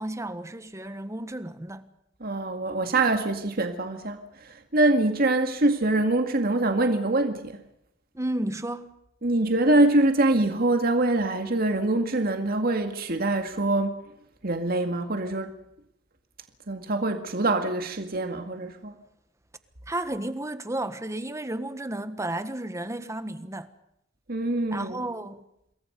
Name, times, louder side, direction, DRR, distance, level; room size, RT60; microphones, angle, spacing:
voice 1, 0.0-1.9 8.1-8.9 19.9-23.7 24.7-25.4, right 1 dB, 15° right, 1.4 m, -32 dB
voice 2, 2.2-7.6 9.2-14.0 14.4-15.5 16.7-18.9 24.3-25.1, right 2 dB, 50° right, 2.1 m, -24 dB
28.0 x 21.5 x 5.4 m
head